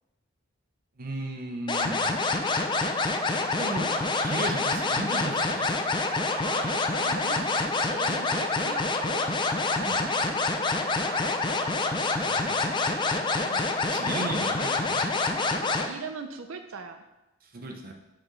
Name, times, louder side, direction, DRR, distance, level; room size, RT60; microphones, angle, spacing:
voice 1, 1.0-2.2 3.4-3.9 4.2-5.7 9.8-10.0 12.2-12.6 13.9-15.0 17.5-17.9, right 2 dB, 45° right, 3 dB, 0.8 m, -35 dB
sound 1, 1.7-15.9, left 3 dB, 25° left, 0.4 m, -27 dB
voice 2, 6.4-7.5 7.9-9.3 11.0-11.4 13.4-13.6 15.9-17.0, right 4 dB, 80° right, 7 dB, 0.6 m, -40 dB
6.2 x 4.9 x 3.1 m, 0.95 s
head